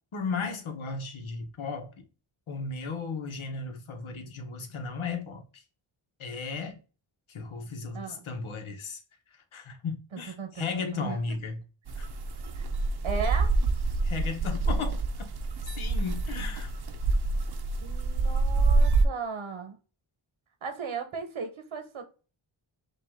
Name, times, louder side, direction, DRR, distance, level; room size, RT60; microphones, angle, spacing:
voice 1, 0.1-2.0 2.5-5.6 6.2-6.8 7.3-9.0 9.5-11.6 12.0-12.1 14.0-15.0 15.6-16.7, left 4 dB, 85° left, 1.1 m, -35 dB
voice 2, 7.9-8.2 10.1-11.4 12.5-12.7 13.0-13.5 17.8-19.8 20.6-22.0, right 5 dB, 85° right, 1.1 m, -36 dB
sound 1, 11.9-19.0, right 3 dB, 55° right, 0.7 m, -26 dB
5.6 x 2.5 x 3.6 m
wide cardioid pair, 85°, 47 cm